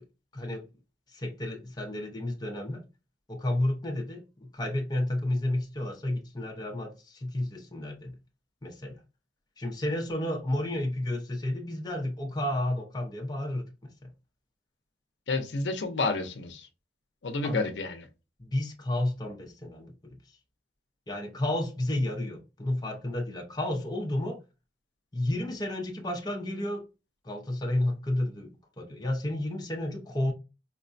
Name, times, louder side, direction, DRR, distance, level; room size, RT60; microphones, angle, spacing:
voice 1, 0.3-0.6 1.1-2.8 3.3-8.2 8.6-9.0 9.6-14.1 17.4-17.6 18.4-20.2 21.1-24.4 25.1-26.9 27.2-30.3, left 1 dB, 25° left, 0.6 m, -31 dB
voice 2, 15.3-16.7 17.2-18.1, left 3 dB, 75° left, 0.6 m, -30 dB
4.5 x 2.2 x 2.5 m
head